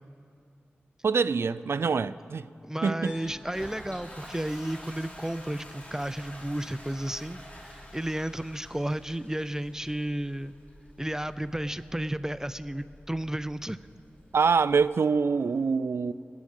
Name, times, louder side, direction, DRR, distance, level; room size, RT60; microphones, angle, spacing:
voice 1, 1.0-2.5 2.8-3.1 14.3-16.1, right 5 dB, 70° right, 0.4 m, -25 dB
voice 2, 2.6-10.5 11.0-13.8, right 1 dB, 10° right, 0.5 m, -33 dB
Piano, 3.0-7.1, left 2 dB, 75° left, 1.8 m, -56 dB
Toilet flush, 3.2-14.8, equal, 35° left, 3.6 m, -48 dB
27.5 x 10.0 x 3.8 m
cardioid pair, 40°, 4 cm